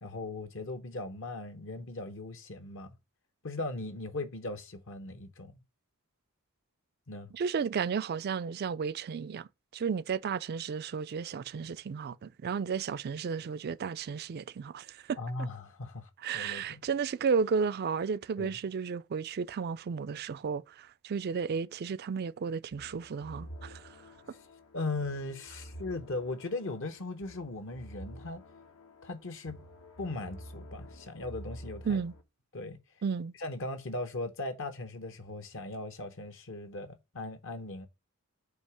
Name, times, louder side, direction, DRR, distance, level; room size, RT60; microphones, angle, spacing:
voice 1, 0.0-3.0 3.4-5.6 7.1-7.3 15.2-16.8 18.4-18.5 24.7-28.4 29.0-29.6 30.0-32.0 32.5-32.8 33.4-37.9, left 2 dB, 60° left, 0.9 m, -38 dB
voice 2, 7.3-9.5 9.7-15.2 16.2-23.9 31.9-32.1 33.0-33.3, right 6 dB, 45° right, 0.3 m, -33 dB
sound 1, 22.7-32.2, equal, 80° left, 1.2 m, -49 dB
8.1 x 2.9 x 4.7 m
head